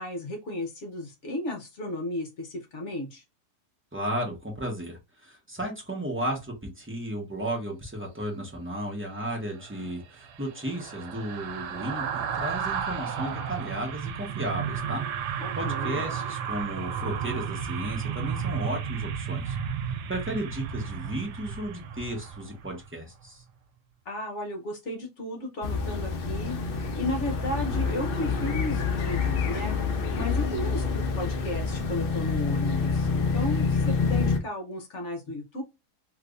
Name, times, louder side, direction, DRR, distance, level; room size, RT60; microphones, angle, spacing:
voice 1, 0.0-3.2 15.4-16.0 24.1-29.7 30.1-35.6, left 1 dB, 55° left, 1.0 m, -34 dB
voice 2, 3.9-15.0 15.5-19.6 20.1-23.4, right 1 dB, 10° right, 0.7 m, -34 dB
sound 1, 9.5-22.9 23.2-23.4, right 7 dB, 85° right, 1.2 m, -33 dB
sound 2, 25.6-34.4, left 5 dB, 80° left, 0.5 m, -27 dB
3.3 x 3.0 x 2.5 m
omnidirectional pair, 1.7 m